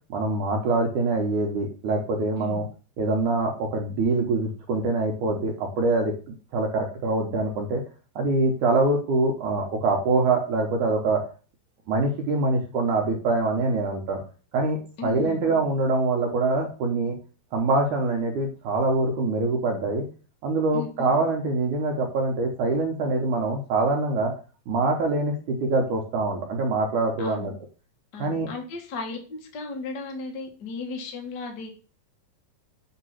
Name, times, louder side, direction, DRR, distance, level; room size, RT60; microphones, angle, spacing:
voice 1, 0.1-2.7 3.0-6.1 6.5-7.8 8.2-11.2 11.9-14.2 14.5-17.2 17.5-20.1 20.4-24.3 24.7-27.5 28.2-28.5, right 3 dB, 65° right, 1 dB, 2.2 m, -24 dB
voice 2, 15.0-15.4 20.7-21.1 27.2-27.5 28.1-31.7, left 4 dB, 50° left, 1 dB, 1.3 m, -35 dB
8.2 x 3.6 x 5.7 m, 0.35 s
omnidirectional pair, 4.6 m